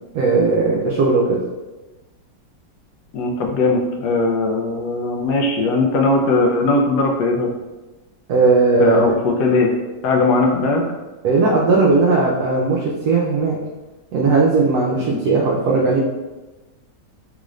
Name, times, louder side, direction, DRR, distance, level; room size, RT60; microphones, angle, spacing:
voice 1, 0.1-1.4 8.3-9.1 11.2-13.6 14.1-16.0, right 3 dB, 70° right, -3 dB, 1.0 m, -17 dB
voice 2, 3.1-7.5 8.8-9.7 10.0-10.8 15.0-15.2, left 2 dB, 70° left, 2 dB, 1.1 m, -19 dB
3.6 x 2.5 x 3.1 m, 1.1 s
omnidirectional pair, 1.9 m